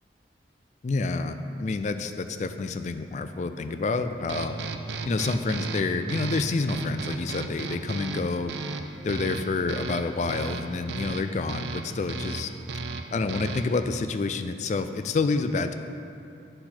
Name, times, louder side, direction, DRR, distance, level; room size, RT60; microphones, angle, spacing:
voice 1, 0.8-4.6 5.1-8.5 9.0-12.5 13.1-15.7, left 3 dB, 40° left, 9 dB, 0.3 m, -28 dB
sound 1, 4.3-13.8, right 3 dB, 70° right, 0.4 m, -35 dB
7.8 x 4.3 x 5.9 m, 2.8 s
head